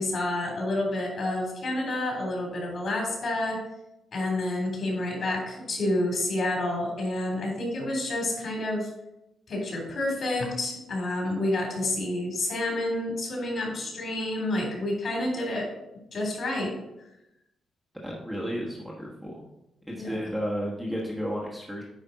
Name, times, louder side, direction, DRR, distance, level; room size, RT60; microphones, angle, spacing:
voice 1, 0.0-3.6 4.1-8.9 9.5-15.7 16.1-16.7 20.0-20.2, left 1 dB, 50° left, -1 dB, 3.3 m, -29 dB
voice 2, 18.0-19.5 19.9-21.8, equal, ahead, -4 dB, 1.2 m, -32 dB
9.2 x 5.1 x 4.0 m, 0.88 s
wide cardioid pair, 150°, 0 cm